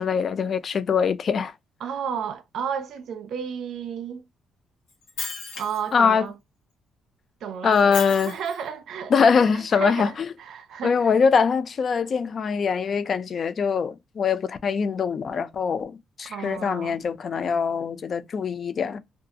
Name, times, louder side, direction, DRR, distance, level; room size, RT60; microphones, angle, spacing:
voice 1, 0.0-1.5 5.9-6.3 7.6-8.3 9.1-10.3 10.8-19.0, left 6 dB, 50° left, 0.3 m, -23 dB
voice 2, 1.8-4.3 5.6-6.3 7.4-11.1 16.3-17.0, right 7 dB, 70° right, 0.4 m, -33 dB
Shatter, 4.9-5.9 7.7-8.7, left 3 dB, 85° left, 1.0 m, -35 dB
2.6 x 2.3 x 2.4 m
cardioid pair, 90°, 0 cm